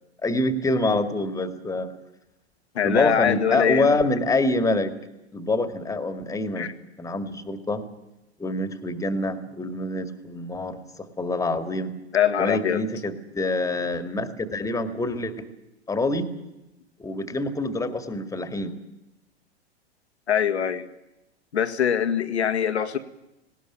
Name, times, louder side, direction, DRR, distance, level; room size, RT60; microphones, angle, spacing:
voice 1, 0.2-1.9 2.8-5.0 5.3-6.7 7.0-7.8 8.4-11.9 12.4-15.5 15.9-16.3 17.0-18.7, left 2 dB, 10° left, 2.0 m, -26 dB
voice 2, 2.8-4.0 6.6-6.7 12.1-12.8 20.3-20.9 21.5-23.0, left 8 dB, 75° left, 1.9 m, -23 dB
19.0 x 18.5 x 9.1 m
figure-of-eight pair, 95°, 34 cm